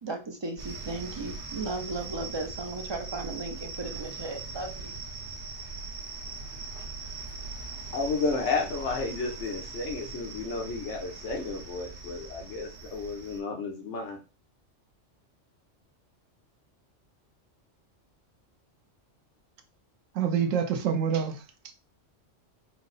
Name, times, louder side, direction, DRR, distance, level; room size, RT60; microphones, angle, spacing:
voice 1, 0.0-5.0, right 3 dB, 45° right, 0.3 m, -36 dB
sound 1, 0.6-13.4, right 3 dB, 65° right, 1.3 m, -41 dB
voice 2, 7.9-14.2, left 3 dB, 70° left, 1.1 m, -32 dB
voice 3, 20.2-21.4, right 7 dB, 90° right, 1.1 m, -26 dB
4.5 x 2.0 x 3.9 m
omnidirectional pair, 1.3 m